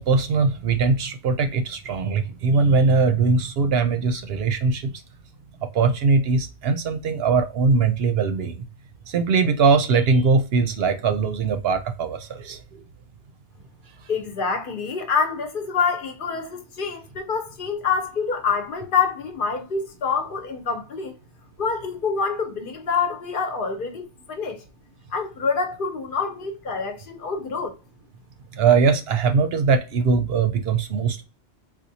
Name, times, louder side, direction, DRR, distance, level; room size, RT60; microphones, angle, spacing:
voice 1, 0.0-4.9 5.7-8.6 9.1-12.6 28.5-31.2, right 4 dB, 70° right, 0.7 m, -21 dB
voice 2, 14.1-21.1 21.6-24.6 25.1-27.7, left 5 dB, 55° left, 0.9 m, -26 dB
4.3 x 2.2 x 2.7 m
omnidirectional pair, 1.1 m